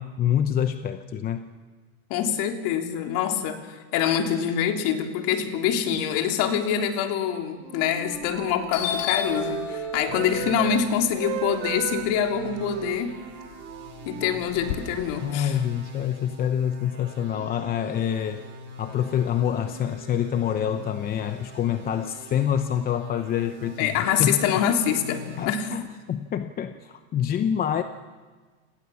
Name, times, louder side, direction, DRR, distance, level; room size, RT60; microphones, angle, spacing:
voice 1, 0.0-1.5 15.2-18.5 18.8-23.9 24.2-24.6 25.4-27.8, left 9 dB, 20° left, 9 dB, 0.8 m, -26 dB
voice 2, 2.1-13.1 14.1-15.6 23.8-25.7, left 8 dB, 45° left, 3 dB, 3.5 m, -25 dB
Wind instrument woodwind instrument, 7.5-10.8 11.1-14.9, right 10 dB, 45° right, 4.8 m, -36 dB
Doorbell, 8.1-8.4 8.7-12.8 13.2-14.7, left 9 dB, 60° left, 3.0 m, -33 dB
sound 1, 10.1-25.4, left 1 dB, 25° right, 6.7 m, -44 dB
29.0 x 28.0 x 7.2 m, 1.4 s
supercardioid pair, 145°, 43 cm